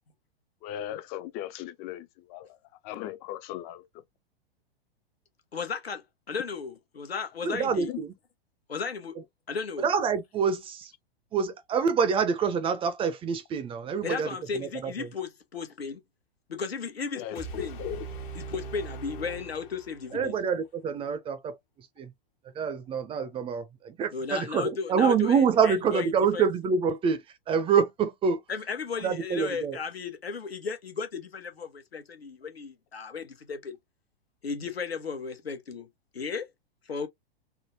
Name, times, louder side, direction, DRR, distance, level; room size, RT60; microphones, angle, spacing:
voice 1, 0.6-2.6 2.8-4.0 7.9-8.0 17.1-18.0 20.1-20.3, left 12 dB, 30° left, 0.5 m, -38 dB
voice 2, 5.5-7.9 8.7-9.2 9.5-9.9 14.0-16.0 16.5-17.8 18.4-20.3 24.1-26.5 28.5-33.8 34.4-35.9 36.1-36.5 36.9-37.1, left 5 dB, 90° left, 1.0 m, -35 dB
voice 3, 7.4-8.1 9.8-10.9 11.3-15.1 20.1-21.6 22.0-22.1 22.6-27.2 27.5-28.4 29.0-29.8, right 6 dB, 20° right, 0.5 m, -26 dB
sound 1, 17.3-20.4, right 4 dB, 55° left, 1.4 m, -40 dB
3.6 x 2.1 x 2.8 m
hypercardioid pair, 110°, 30 cm